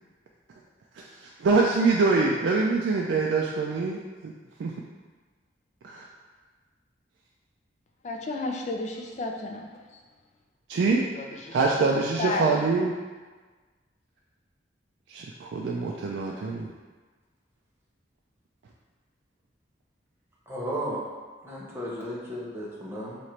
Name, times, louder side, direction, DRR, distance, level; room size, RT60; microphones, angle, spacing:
voice 1, 1.4-4.3 4.6-4.8 5.8-6.0 10.7-11.1 11.5-12.9 15.1-16.7, right 4 dB, 70° right, -2 dB, 0.3 m, -24 dB
voice 2, 8.0-10.0 11.1-11.6 12.2-12.7, left 2 dB, 40° left, 2 dB, 0.4 m, -32 dB
voice 3, 20.5-21.0 21.4-23.2, equal, 15° right, -6 dB, 0.7 m, -34 dB
3.1 x 2.5 x 4.2 m, 1.4 s
head